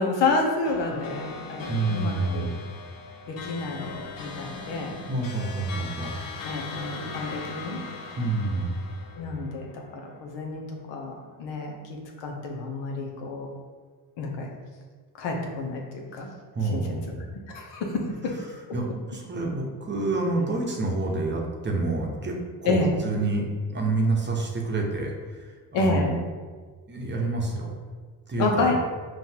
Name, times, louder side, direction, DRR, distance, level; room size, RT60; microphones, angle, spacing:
voice 1, 0.0-2.5 3.3-5.0 6.4-7.8 9.2-11.1 11.4-13.5 14.2-14.5 15.2-16.3 16.7-16.8 17.5-18.3 22.7-23.0 25.7-26.1 28.4-28.7, left 3 dB, 80° left, 1 dB, 0.9 m, -29 dB
sound 1, 0.6-10.3, left 4 dB, 50° left, 0.7 m, -39 dB
voice 2, 1.7-2.6 5.1-6.2 8.2-8.8 16.5-17.2 18.7-26.1 26.9-27.7 28.3-28.7, right 2 dB, 25° right, -1 dB, 0.8 m, -28 dB
5.5 x 2.5 x 2.8 m, 1.5 s
supercardioid pair, 85°, 44 cm